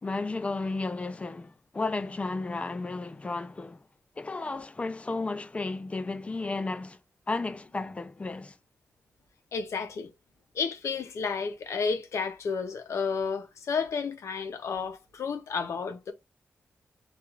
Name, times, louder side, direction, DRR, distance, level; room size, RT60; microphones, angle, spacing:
voice 1, 0.0-3.8 4.2-7.0 7.3-8.6, left 3 dB, 25° left, 0.4 m, -33 dB
voice 2, 9.5-10.1 10.5-16.1, left 5 dB, 80° left, 0.6 m, -31 dB
2.4 x 2.4 x 3.0 m
wide cardioid pair, 100°, 5 cm